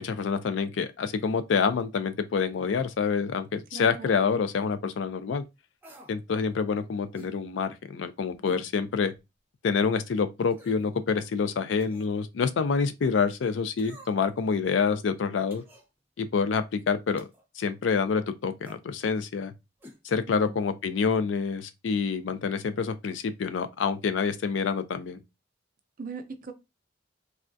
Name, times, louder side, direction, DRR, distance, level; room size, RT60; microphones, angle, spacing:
voice 1, 0.0-5.4 6.1-9.1 9.6-15.6 16.2-17.3 17.6-19.5 20.0-25.2, left 5 dB, 80° left, 0.4 m, -27 dB
voice 2, 3.7-4.4 20.3-20.6 26.0-26.5, right 4 dB, 50° right, 0.5 m, -40 dB
sound 1, 5.8-6.2 7.1-7.4 8.4-8.7 9.2-9.3 10.5-10.9 11.8-12.1 13.8-14.3 15.5-15.9 17.2-17.4 18.6-18.8 19.8-20.0 20.3-20.4, left 1 dB, 10° right, 0.8 m, -49 dB
3.4 x 2.3 x 2.5 m
head